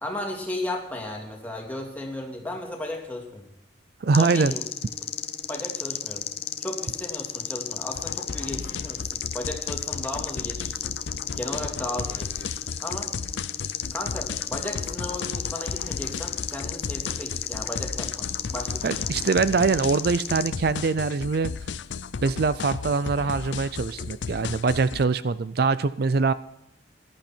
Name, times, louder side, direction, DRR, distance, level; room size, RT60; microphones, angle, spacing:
voice 1, 0.0-3.5 4.2-4.6 5.5-6.2 6.6-10.9 11.4-12.5 12.8-13.1 13.9-19.0, left 1 dB, 10° left, 0 dB, 2.7 m, -35 dB
voice 2, 4.0-4.5 18.8-21.5 22.2-26.3, right 4 dB, 55° right, 15 dB, 0.4 m, -23 dB
sound 1, 4.1-20.5, left 8 dB, 35° left, 0.9 m, -33 dB
sound 2, 7.9-25.0, left 5 dB, 80° left, 0.5 m, -35 dB
17.5 x 12.0 x 4.4 m, 0.83 s
head